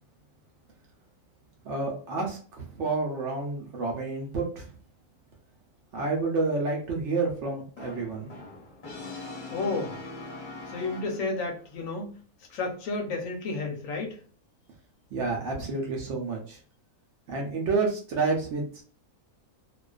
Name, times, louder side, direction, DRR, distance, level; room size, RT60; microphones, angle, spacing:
voice 1, 1.6-4.7 5.9-8.3 15.1-16.6 17.3-18.8, right 3 dB, 65° right, 0.8 m, -29 dB
Brass instrument, 7.8-11.6, left 3 dB, 45° left, 0.7 m, -41 dB
voice 2, 9.5-10.0 10.7-12.1 12.5-14.2, left 3 dB, 70° left, 0.9 m, -31 dB
2.4 x 2.3 x 2.3 m
omnidirectional pair, 1.5 m